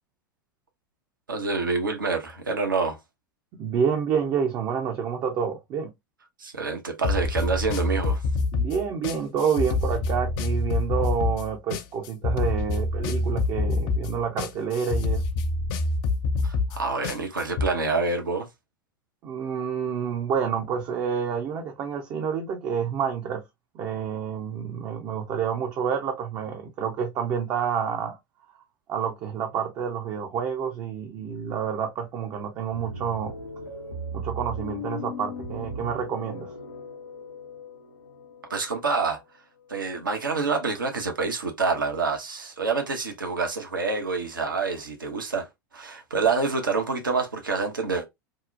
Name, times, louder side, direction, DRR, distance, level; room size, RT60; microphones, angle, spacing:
voice 1, 1.3-3.0 6.4-8.2 16.4-18.5 38.5-39.2 39.7-45.5 45.7-48.1, right 4 dB, 75° right, 0.7 m, -27 dB
voice 2, 3.6-5.9 8.5-15.2 19.2-23.4 23.7-28.2 28.9-33.3 34.1-36.5, right 7 dB, 35° right, 0.5 m, -28 dB
sound 1, 7.0-17.7, left 3 dB, 40° left, 0.4 m, -26 dB
sound 2, 32.7-40.2, equal, 85° left, 0.7 m, -38 dB
2.7 x 2.0 x 2.4 m
figure-of-eight pair, 85°, 11 cm